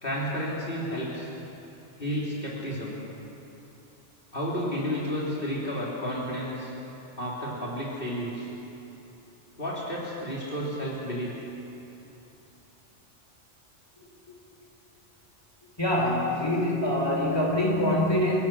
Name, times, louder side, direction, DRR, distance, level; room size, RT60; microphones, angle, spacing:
voice 1, 0.0-1.3 2.0-2.9 4.3-6.7 7.2-8.5 9.6-11.3, equal, 50° left, -6 dB, 3.4 m, -31 dB
voice 2, 15.8-18.4, left 1 dB, 20° left, -2 dB, 4.0 m, -24 dB
27.5 x 16.5 x 6.0 m, 2.9 s
omnidirectional pair, 1.2 m